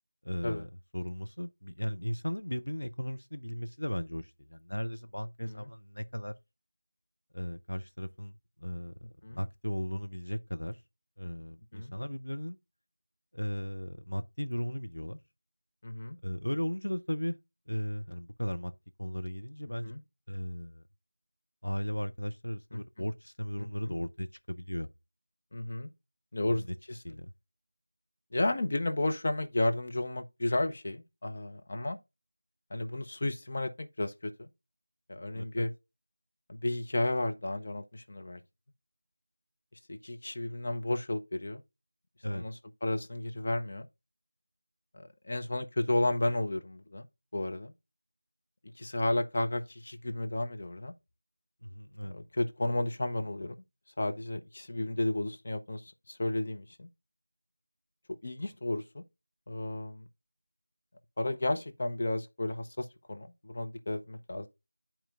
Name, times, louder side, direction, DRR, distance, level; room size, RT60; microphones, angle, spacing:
voice 1, 0.2-0.7 0.9-6.3 7.3-8.9 9.3-10.8 11.2-12.6 13.3-15.2 16.2-17.4 17.7-18.7 19.0-19.9 20.3-20.8 21.6-24.9 27.0-27.3 35.3-35.7 42.2-42.4 51.6-52.2, equal, 70° left, 0.7 m, -36 dB
voice 2, 15.8-16.2 19.8-20.0 22.7-22.8 23.6-23.9 25.5-25.9 26.3-26.6 26.9-27.0 28.3-32.0 32.7-34.5 35.1-35.7 36.5-38.4 39.9-41.6 42.3-43.9 44.9-47.1 47.3-47.7 48.8-50.9 52.1-53.5 54.0-56.9 58.2-59.0 59.5-60.0 61.2-64.5, left 1 dB, 30° left, 0.8 m, -33 dB
11.5 x 4.4 x 2.5 m
figure-of-eight pair, 170°, 0 cm